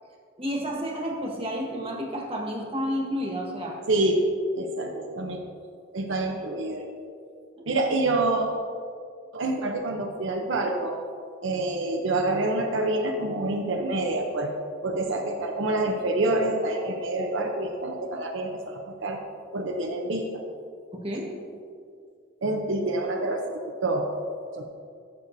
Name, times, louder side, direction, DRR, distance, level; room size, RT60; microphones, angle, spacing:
voice 1, 0.4-3.8 7.6-7.8 15.1-15.2 20.9-21.3, equal, 30° right, -1 dB, 1.4 m, -31 dB
voice 2, 3.9-4.3 4.6-5.4 5.9-6.9 7.3-7.4 7.7-8.5 9.3-11.0 11.4-14.5 14.8-19.2 19.5-20.4 22.4-24.1 24.5-24.6, right 2 dB, 70° right, 2 dB, 0.7 m, -27 dB
14.0 x 6.8 x 2.6 m, 2.3 s
head